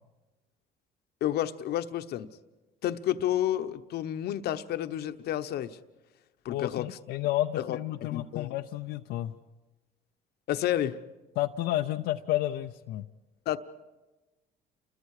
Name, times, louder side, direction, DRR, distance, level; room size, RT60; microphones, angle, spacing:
voice 1, 1.2-2.3 2.8-5.8 6.4-7.0 7.6-7.8 8.1-8.5 10.5-11.0 13.5-13.6, left 12 dB, 70° left, 10 dB, 1.0 m, -30 dB
voice 2, 6.5-9.3 11.4-13.1, left 14 dB, 85° left, 4 dB, 0.7 m, -31 dB
29.5 x 22.5 x 4.9 m, 1.1 s
cardioid pair, 110°, 17 cm